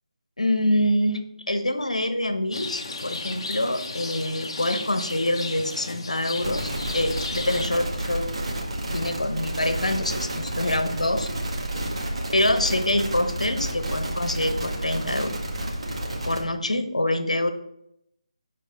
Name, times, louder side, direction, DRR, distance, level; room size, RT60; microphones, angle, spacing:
voice 1, 0.4-8.3 8.9-11.3 12.3-15.3 16.2-17.5, left 1 dB, 75° left, 8 dB, 1.1 m, -25 dB
Rain, 2.5-7.7, left 3 dB, 40° left, 1.0 m, -34 dB
sound 1, 6.4-16.4, right 1 dB, 55° right, 1.8 m, -30 dB
11.0 x 4.1 x 3.9 m, 0.79 s
figure-of-eight pair, 155°, 4 cm